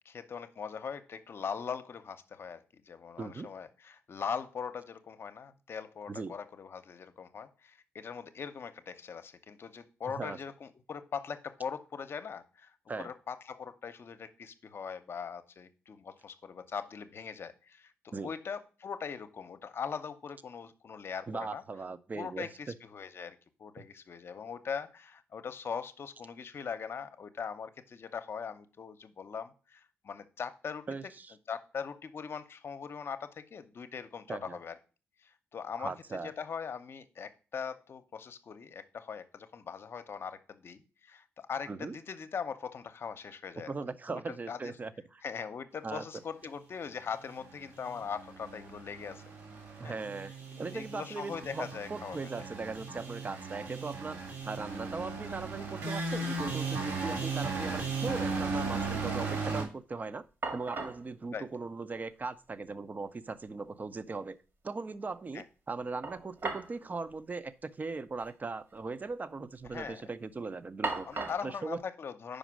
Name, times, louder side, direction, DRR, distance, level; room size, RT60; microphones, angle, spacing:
voice 1, 0.0-17.9 18.2-21.6 22.1-30.9 31.5-34.7 35.2-35.9 36.2-43.7 44.1-44.7 45.2-49.2 49.8-50.0 50.5-52.4 61.3-61.4 65.3-65.4 69.7-70.0 71.1-72.4, left 6 dB, 55° left, 11 dB, 0.7 m, -41 dB
voice 2, 3.2-3.5 6.1-6.3 10.2-10.4 12.9-13.1 18.1-18.3 21.3-22.7 23.8-23.9 30.9-31.3 34.3-34.6 35.8-36.3 41.7-42.0 43.7-45.2 45.8-46.0 49.8-60.2 60.5-64.4 64.6-71.8, right 4 dB, 35° right, 13 dB, 0.6 m, -39 dB
sound 1, 47.3-59.6, right 4 dB, 90° right, 2.1 m, -37 dB
sound 2, 54.5-54.9 55.2-56.1 56.4-56.5 59.9-60.0 60.4-61.1 62.2-62.3 62.7-62.8 66.0-66.8 67.1-67.2 68.1-68.3 68.6-69.1 69.5-69.9 70.8-71.5, right 3 dB, 60° right, 1.7 m, -39 dB
5.1 x 5.0 x 6.2 m, 0.35 s
supercardioid pair, 60°, 5 cm